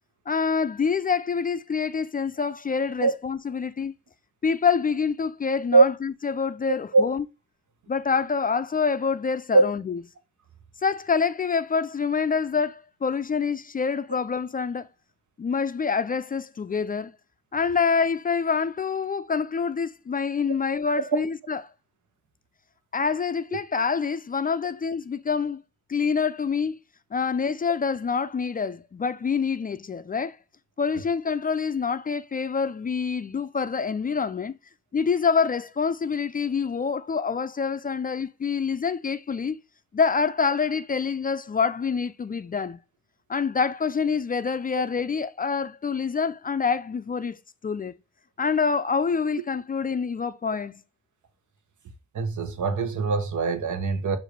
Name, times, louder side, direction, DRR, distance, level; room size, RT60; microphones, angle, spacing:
voice 1, 0.3-3.9 4.4-7.2 7.9-10.0 10.8-14.9 15.4-17.1 17.5-21.6 22.9-25.6 25.9-26.8 27.1-30.4 30.8-34.5 34.9-39.6 39.9-42.8 43.3-47.4 47.6-47.9 48.4-50.8, left 5 dB, 30° left, 0.4 m, -26 dB
voice 2, 52.1-54.2, right 3 dB, 75° right, 0.9 m, -21 dB
6.3 x 2.6 x 3.2 m
cardioid pair, 60°, 30 cm